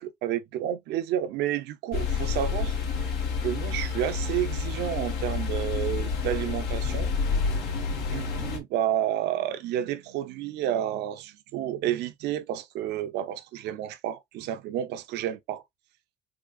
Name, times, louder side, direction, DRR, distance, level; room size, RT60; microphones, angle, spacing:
voice 1, 0.2-3.1 3.4-7.1 8.0-15.6, right 11 dB, 80° right, 0.6 m, -30 dB
sound 1, 1.9-8.6, left 5 dB, 75° left, 1.3 m, -29 dB
3.8 x 3.1 x 2.4 m
cardioid pair, 110°, 17 cm